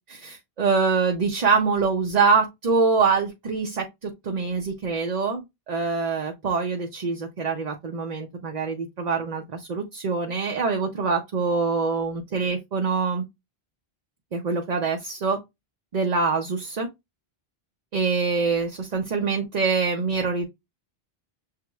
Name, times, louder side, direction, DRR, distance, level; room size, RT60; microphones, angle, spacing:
voice 1, 0.1-13.2 14.3-15.4 15.9-16.9 17.9-20.4, right 4 dB, 50° right, 0.7 m, -24 dB
6.6 x 3.0 x 2.3 m
omnidirectional pair, 1.0 m